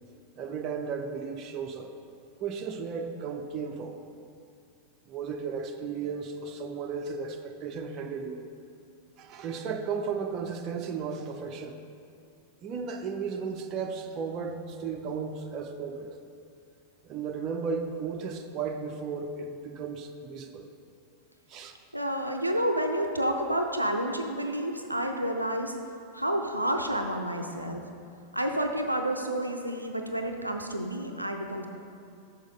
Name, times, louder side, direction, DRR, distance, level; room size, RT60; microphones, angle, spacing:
voice 1, 0.4-1.9 2.4-4.0 5.1-8.4 9.2-11.8 12.6-16.1 17.0-20.7 21.5-21.8, right 5 dB, 35° right, 5 dB, 0.6 m, -35 dB
voice 2, 21.9-25.7 26.1-27.8 28.3-31.7, right 1 dB, 85° right, 4 dB, 0.5 m, -29 dB
6.3 x 6.2 x 5.2 m, 2.5 s
figure-of-eight pair, 90°, 0 cm